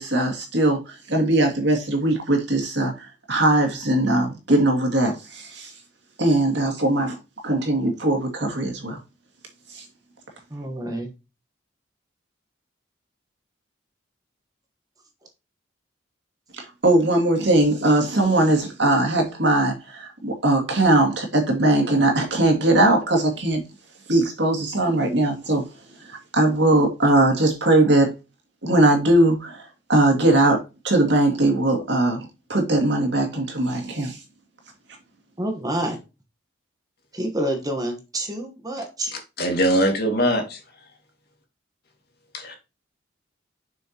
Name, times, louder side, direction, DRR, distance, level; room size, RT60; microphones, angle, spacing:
voice 1, 0.0-5.7 6.2-7.2 7.4-9.0 9.7-9.8 16.6-23.6 24.1-25.6 26.1-28.1 28.6-29.6 29.9-30.6 30.8-34.2, right 1 dB, 65° right, 2.3 m, -20 dB
voice 2, 10.5-11.1 35.4-36.0 37.1-39.1, right 1 dB, 20° right, 1.2 m, -28 dB
voice 3, 39.4-40.6 42.3-42.6, equal, 55° left, 2.3 m, -21 dB
6.9 x 6.2 x 3.0 m
head